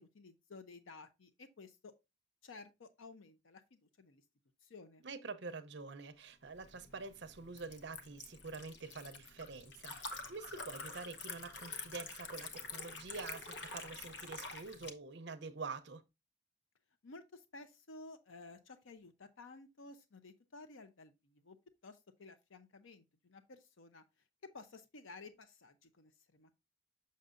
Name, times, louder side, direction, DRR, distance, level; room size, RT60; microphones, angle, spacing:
voice 1, 0.0-1.9 2.4-4.2 4.7-5.0 17.0-21.6 21.8-24.0 24.4-26.5, left 3 dB, 85° left, 0.7 m, -54 dB
voice 2, 5.0-16.0, right 4 dB, 60° right, 0.6 m, -47 dB
Liquid, 6.5-14.9, left 4 dB, 60° left, 1.0 m, -47 dB
6.6 x 6.5 x 2.5 m
head